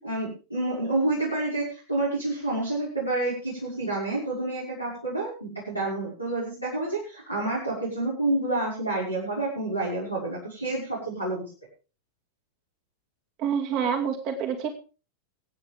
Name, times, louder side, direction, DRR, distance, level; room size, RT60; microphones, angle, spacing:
voice 1, 0.0-11.4, right 2 dB, 90° right, -7 dB, 5.9 m, -29 dB
voice 2, 13.4-14.7, right 7 dB, 40° right, 4 dB, 2.3 m, -27 dB
24.0 x 9.1 x 3.6 m, 0.35 s
figure-of-eight pair, 90°, 0 cm